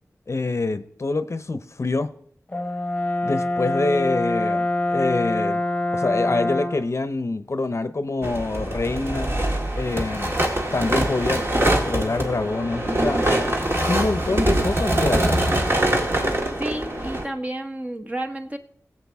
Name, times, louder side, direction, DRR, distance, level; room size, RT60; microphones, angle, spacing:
voice 1, 0.3-2.1 3.2-5.6 5.9-9.3 9.8-10.4 10.7-13.3 13.8-15.4, left 3 dB, 55° left, 0.6 m, -26 dB
Brass instrument, 2.5-6.9, left 2 dB, 25° left, 0.9 m, -25 dB
sound 1, 8.2-17.2, right 1 dB, 45° right, 1.7 m, -23 dB
voice 2, 16.6-18.6, right 1 dB, 25° right, 1.0 m, -31 dB
20.5 x 7.8 x 3.5 m
wide cardioid pair, 85°, 6 cm